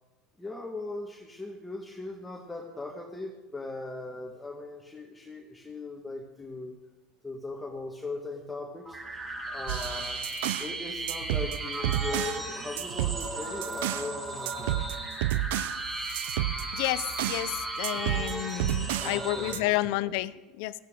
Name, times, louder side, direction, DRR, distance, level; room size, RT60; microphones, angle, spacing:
voice 1, 0.4-6.8 7.2-9.0 9.5-10.2 10.6-14.8 19.0-19.7, left 3 dB, 5° left, -1 dB, 1.4 m, -39 dB
sound 1, 8.9-19.5, right 2 dB, 20° right, 5.2 m, -36 dB
sound 2, 9.7-10.8 11.1-12.4 12.8-14.1 14.5-17.5 17.8-19.2 19.5-19.6, right 14 dB, 85° right, 0.4 m, -31 dB
voice 2, 16.7-20.7, left 17 dB, 70° left, 16 dB, 0.6 m, -31 dB
17.0 x 14.5 x 3.7 m, 1.1 s
supercardioid pair, 145°, 0 cm